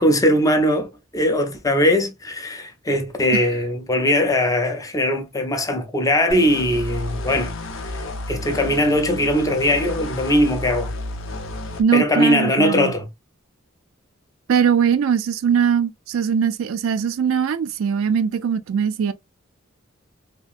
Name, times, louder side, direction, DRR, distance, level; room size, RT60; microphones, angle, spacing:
voice 1, 0.0-7.5 8.3-10.9 11.9-13.1, left 1 dB, 15° left, 0.5 m, -20 dB
sound 1, 6.3-11.8, left 1 dB, 65° left, 0.6 m, -31 dB
voice 2, 11.8-12.9 14.5-19.1, right 7 dB, 70° right, 0.3 m, -20 dB
2.8 x 2.4 x 2.4 m
head